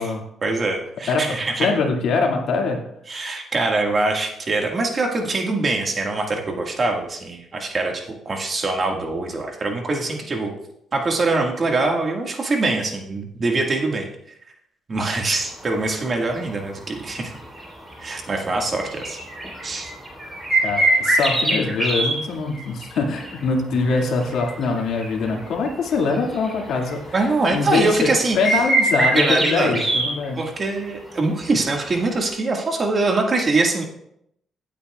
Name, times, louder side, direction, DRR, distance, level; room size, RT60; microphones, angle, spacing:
voice 1, 0.4-1.7 3.1-10.5 10.9-14.1 14.9-17.3 18.0-19.2 19.6-19.9 27.1-28.4 29.2-29.7 30.4-33.8, right 3 dB, 40° right, 2 dB, 1.8 m, -23 dB
voice 2, 1.1-2.8 20.4-27.1 27.5-28.1 28.3-30.4, left 4 dB, 75° left, 1 dB, 2.1 m, -23 dB
sound 1, 15.2-15.5 16.4-16.5 17.0-17.3 17.5-17.6 17.9-18.2 18.6-22.1 22.5-23.4 23.9-25.3 25.7-25.8 26.0-27.1 27.7-27.8 28.0-30.0 31.5-31.6 32.2-32.3, right 2 dB, 20° right, 4.1 m, -22 dB
16.0 x 8.6 x 2.4 m, 0.75 s
cardioid pair, 90°, 0 cm